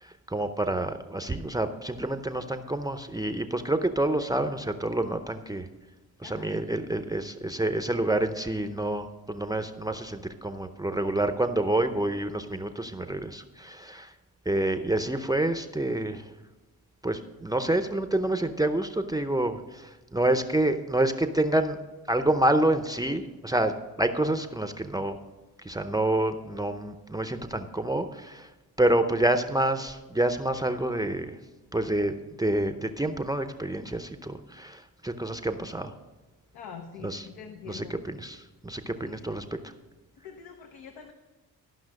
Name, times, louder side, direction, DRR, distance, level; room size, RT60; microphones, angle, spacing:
voice 1, 0.0-5.7 6.2-14.1 14.5-16.3 17.0-21.8 22.1-25.2 25.6-28.5 28.8-31.4 31.7-35.9 37.0-37.2 37.7-38.4 38.6-39.7, right 1 dB, 10° right, 8 dB, 0.6 m, -28 dB
voice 2, 6.2-6.6 36.5-38.0 39.0-39.3 40.2-41.1, left 6 dB, 75° left, 5 dB, 1.0 m, -45 dB
13.5 x 5.6 x 6.3 m, 1.2 s
cardioid pair, 75°, 37 cm